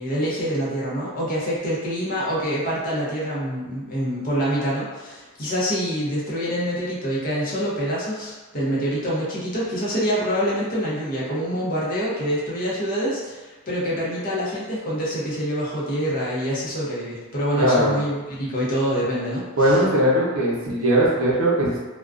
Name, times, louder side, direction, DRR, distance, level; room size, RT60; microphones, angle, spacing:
voice 1, 0.0-19.8, equal, 40° left, -7 dB, 0.6 m, -26 dB
voice 2, 17.6-18.0 19.6-21.8, right 1 dB, 65° right, -5 dB, 0.7 m, -19 dB
2.4 x 2.1 x 2.4 m, 1.2 s
head